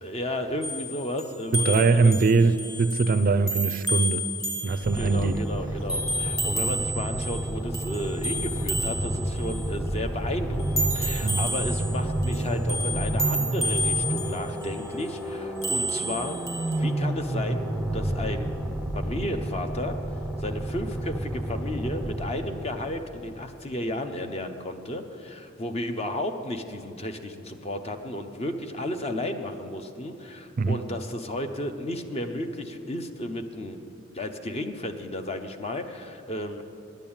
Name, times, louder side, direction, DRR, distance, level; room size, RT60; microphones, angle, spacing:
voice 1, 0.0-2.1 5.0-16.4 16.8-18.5 18.9-20.0 20.4-36.6, left 1 dB, 30° left, 6 dB, 0.7 m, -33 dB
sound 1, 0.6-5.4 5.9-7.5 7.7-9.7 10.6-15.1 15.6-16.8, equal, 15° left, 1.4 m, -31 dB
voice 2, 1.5-4.2 4.6-5.4 11.2-11.5 30.6-30.8, right 4 dB, 45° right, 12 dB, 0.4 m, -22 dB
sound 2, 4.8-22.9, right 1 dB, 5° right, 0.7 m, -30 dB
10.0 x 9.0 x 8.7 m, 2.6 s
head